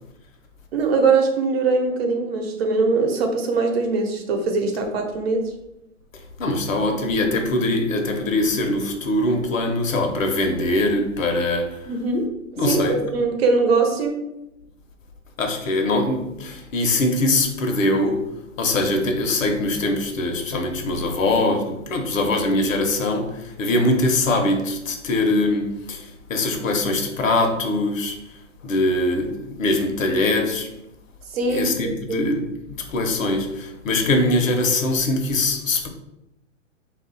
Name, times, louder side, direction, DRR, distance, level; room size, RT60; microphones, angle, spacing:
voice 1, 0.7-5.4 11.8-12.2 12.5-14.2 31.3-32.3, right 4 dB, 50° right, 0.9 m, -22 dB
voice 2, 6.1-11.9 12.6-13.0 15.4-18.2 18.6-28.2 28.6-30.7 31.5-35.9, left 2 dB, 80° left, 1.0 m, -22 dB
4.0 x 2.6 x 4.0 m
hypercardioid pair, 155°, 39 cm